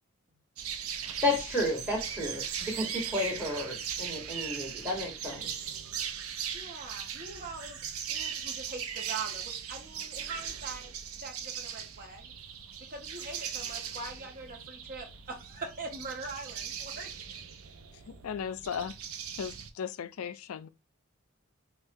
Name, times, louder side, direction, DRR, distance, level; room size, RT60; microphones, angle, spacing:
sound 1, 0.6-19.7, right 8 dB, 80° right, 0.5 m, -39 dB
voice 1, 1.2-5.5, left 1 dB, 10° right, 1.5 m, -32 dB
voice 2, 6.5-7.8 8.1-10.9 11.2-12.3 12.9-17.1, right 3 dB, 40° right, 1.1 m, -42 dB
voice 3, 18.1-19.0 19.4-20.7, left 7 dB, 80° left, 0.4 m, -36 dB
5.5 x 2.3 x 2.5 m
head